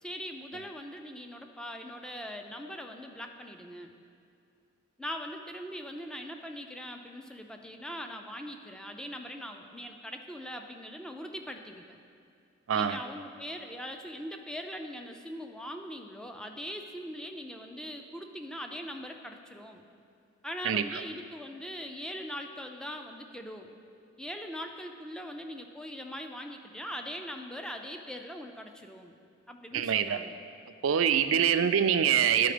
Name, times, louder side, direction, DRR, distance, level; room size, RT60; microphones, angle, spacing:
voice 1, 0.0-3.9 5.0-12.0 12.7-19.8 20.4-23.7 24.2-29.2 29.5-30.3, equal, 5° left, 4 dB, 0.4 m, -41 dB
voice 2, 12.7-13.0 20.6-21.0 29.7-30.2 30.8-32.5, right 8 dB, 70° right, 10 dB, 0.4 m, -25 dB
11.5 x 4.2 x 5.0 m, 2.5 s
head